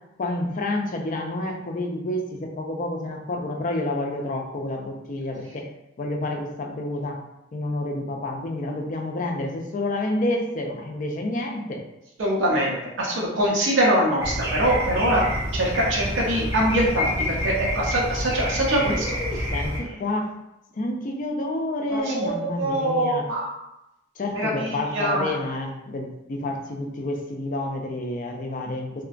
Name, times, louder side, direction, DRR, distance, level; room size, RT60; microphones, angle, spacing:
voice 1, 0.2-5.6 6.0-7.2 7.5-11.8 18.8-20.3 20.7-23.2 24.2-29.0, left 1 dB, 45° left, 2 dB, 0.4 m, -29 dB
voice 2, 12.2-15.2 15.5-19.1 21.9-23.5 24.3-25.3, right 1 dB, 70° right, -3 dB, 0.6 m, -23 dB
sound 1, 14.2-19.8, equal, 15° right, 0.7 m, -28 dB
2.8 x 2.4 x 2.4 m, 0.89 s
head